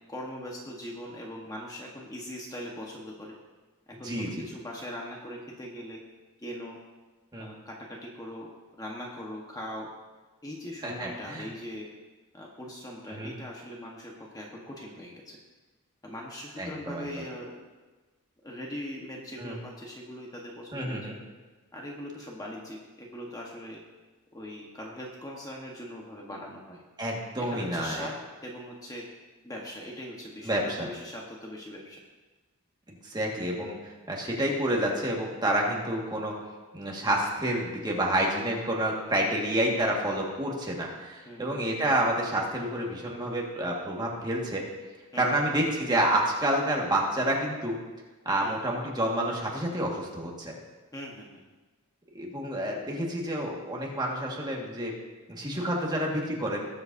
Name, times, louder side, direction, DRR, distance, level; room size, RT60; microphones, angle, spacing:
voice 1, 0.1-3.3 3.9-6.0 6.4-6.8 7.4-8.5 8.8-9.9 10.4-11.9 12.3-15.4 16.0-17.6 18.4-21.0 21.7-23.8 24.3-26.8 27.5-28.1 28.4-29.0 29.4-32.0 39.2-39.3 41.3-41.7 45.1-45.3 48.4-48.6 50.9-51.3 55.5-55.7, equal, 15° left, -2 dB, 1.2 m, -41 dB
voice 2, 4.0-4.5 7.3-7.5 10.8-11.5 13.1-13.3 16.6-17.2 19.4-19.6 20.7-21.2 27.0-28.1 30.4-30.9 33.0-36.4 36.7-44.7 45.2-47.8 48.3-50.5 52.1-54.9 55.3-56.7, right 1 dB, 20° right, -2 dB, 1.7 m, -29 dB
19.5 x 7.9 x 2.7 m, 1.3 s
head